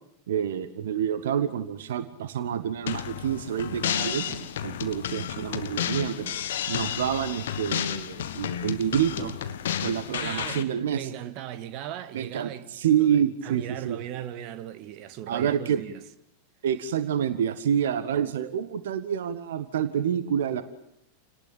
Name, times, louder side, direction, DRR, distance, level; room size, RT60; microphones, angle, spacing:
voice 1, 0.3-6.3 6.7-9.4 9.8-11.1 12.1-14.0 15.3-15.8 16.6-20.6, right 9 dB, 60° right, 1.5 m, -28 dB
sound 1, 2.9-10.6, left 10 dB, 60° left, 1.6 m, -32 dB
voice 2, 10.2-12.7 13.0-16.0, right 11 dB, 40° right, 1.7 m, -38 dB
29.5 x 19.0 x 8.8 m
figure-of-eight pair, 90°, 0 cm